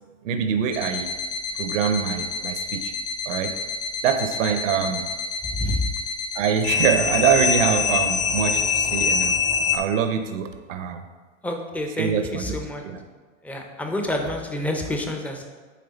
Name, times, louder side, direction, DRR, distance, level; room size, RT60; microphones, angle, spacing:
voice 1, 0.2-1.1 1.6-2.9 3.3-3.6 4.0-5.1 6.3-9.4 9.7-11.0 12.0-13.0, right 7 dB, 70° right, 7 dB, 0.7 m, -24 dB
sound 1, 0.7-9.8, left 6 dB, 45° left, 0.9 m, -25 dB
voice 2, 5.5-5.8 11.4-12.8 13.4-15.4, left 1 dB, 5° left, 3 dB, 0.4 m, -28 dB
8.6 x 3.3 x 4.0 m, 1.5 s
hypercardioid pair, 115°, 39 cm